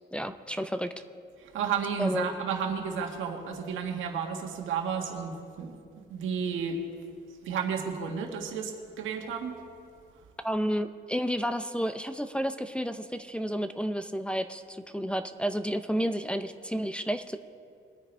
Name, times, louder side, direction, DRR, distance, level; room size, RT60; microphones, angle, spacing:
voice 1, 0.1-0.9 2.0-2.3 10.4-17.4, equal, 5° left, 7 dB, 0.6 m, -31 dB
voice 2, 1.4-5.8 6.1-6.8 7.4-9.6, right 6 dB, 85° right, 2 dB, 1.8 m, -32 dB
22.5 x 9.3 x 3.4 m, 2.3 s
cardioid pair, 90°, 20 cm